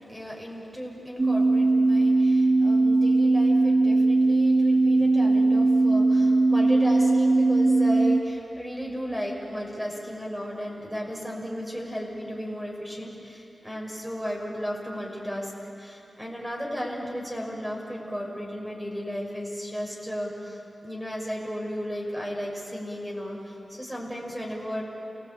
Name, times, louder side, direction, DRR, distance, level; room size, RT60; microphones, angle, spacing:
voice 1, 0.1-15.5 15.8-24.8, equal, 10° right, -2 dB, 6.1 m, -34 dB
sound 1, 1.2-8.2, right 2 dB, 35° right, 0.9 m, -20 dB
29.0 x 17.5 x 8.8 m, 2.9 s
cardioid pair, 50°, 0 cm